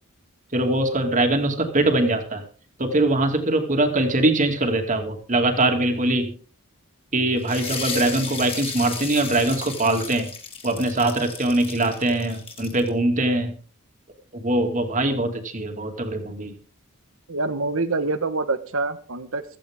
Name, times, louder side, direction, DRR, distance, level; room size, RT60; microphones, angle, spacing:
voice 1, 0.5-2.4 2.8-6.4 7.1-10.3 10.6-13.6 14.3-16.6, right 2 dB, 35° right, 5 dB, 2.6 m, -22 dB
sound 1, 7.4-12.9, left 5 dB, 25° left, 3.6 m, -34 dB
voice 2, 17.3-19.4, right 3 dB, 65° right, 10 dB, 1.5 m, -26 dB
16.0 x 14.5 x 3.7 m, 0.40 s
head